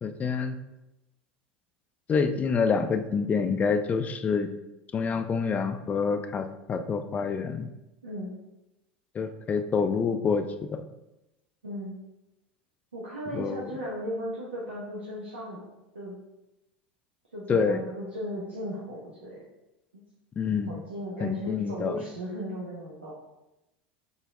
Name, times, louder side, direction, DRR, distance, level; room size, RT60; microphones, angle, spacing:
voice 1, 0.0-0.5 2.1-4.5 4.9-7.7 9.1-10.5 10.7-10.8 13.3-13.7 17.5-17.8 20.4-20.7 21.2-22.0, left 5 dB, 25° left, 8 dB, 0.6 m, -27 dB
voice 2, 8.0-8.3 11.6-12.0 12.9-15.7 15.9-16.1 17.3-19.4 19.9-20.0 20.7-23.1, equal, 80° right, -6 dB, 1.3 m, -36 dB
7.2 x 4.1 x 3.7 m, 0.94 s
figure-of-eight pair, 75°, 6 cm